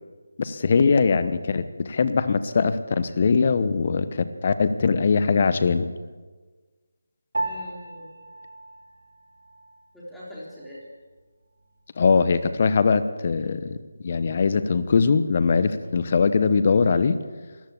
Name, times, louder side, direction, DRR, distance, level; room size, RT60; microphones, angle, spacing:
voice 1, 0.4-5.9 12.0-13.8 14.0-17.2, left 5 dB, 40° left, 12 dB, 1.0 m, -21 dB
voice 2, 1.2-1.5 7.4-8.2 9.9-10.8, left 1 dB, ahead, -9 dB, 3.4 m, -42 dB
Piano, 7.3-17.0, right 2 dB, 75° right, 3.4 m, -39 dB
13.5 x 12.0 x 8.4 m, 1.4 s
figure-of-eight pair, 160°, 0 cm